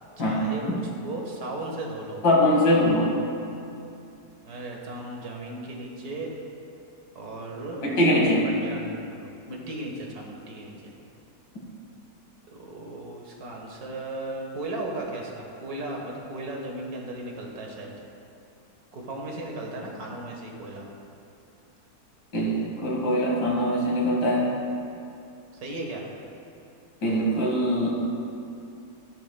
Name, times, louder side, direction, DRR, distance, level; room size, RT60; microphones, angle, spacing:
voice 1, 0.2-2.2 4.5-6.3 7.2-7.8 8.6-8.8 9.1-10.9 12.5-17.9 18.9-20.9 25.6-26.1, right 2 dB, 65° right, 0 dB, 1.8 m, -36 dB
voice 2, 2.2-3.1 7.8-8.5 22.3-24.5 27.0-27.9, equal, 75° left, -3 dB, 2.4 m, -22 dB
13.5 x 11.5 x 2.3 m, 2.6 s
omnidirectional pair, 1.8 m